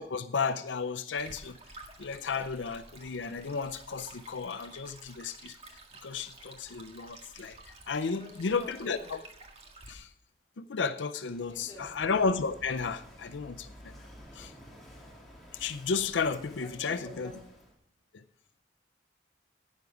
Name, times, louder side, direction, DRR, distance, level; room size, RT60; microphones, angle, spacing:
voice 1, 0.0-1.6 2.0-5.6 6.0-9.2 9.9-10.1 10.6-13.9 14.3-14.5 15.5-17.3 18.1-18.2, left 5 dB, 85° left, 11 dB, 0.5 m, -33 dB
Stream, 1.2-9.9, right 2 dB, 35° right, 1.8 m, -52 dB
voice 2, 8.2-9.1 11.4-12.0 14.4-14.7 16.6-17.3, left 1 dB, 25° left, -4 dB, 4.1 m, -48 dB
Walk footsteps / Wind / Waves surf, 11.1-17.8, equal, ahead, 2.8 m, -52 dB
12.0 x 9.4 x 4.9 m, 0.68 s
head